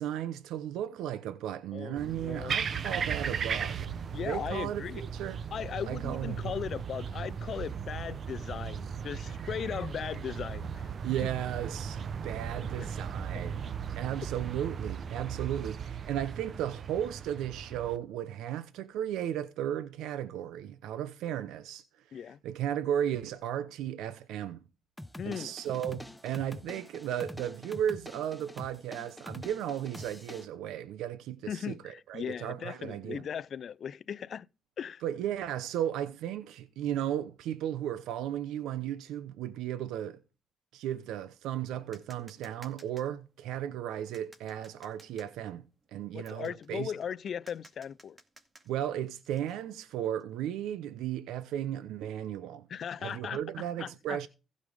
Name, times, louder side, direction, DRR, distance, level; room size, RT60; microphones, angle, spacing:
voice 1, 0.0-3.9 4.2-5.4 5.8-6.5 11.0-13.6 14.0-21.8 22.1-24.6 25.2-33.2 35.0-40.2 40.7-45.6 45.9-46.9 48.7-52.7 53.0-54.3, right 10 dB, 90° right, 0.8 m, -35 dB
voice 2, 1.7-2.5 4.1-5.0 5.5-10.9 12.8-12.9 22.1-22.4 25.2-25.5 31.5-34.5 34.8-35.0 46.1-48.2 52.7-54.2, left 8 dB, 55° left, 0.4 m, -38 dB
sound 1, 2.0-18.0, right 7 dB, 50° right, 0.9 m, -37 dB
sound 2, 25.0-30.5, left 1 dB, 5° left, 0.8 m, -46 dB
sound 3, 41.9-50.2, right 2 dB, 25° right, 2.4 m, -58 dB
15.5 x 5.3 x 5.0 m
cardioid pair, 90°, 0 cm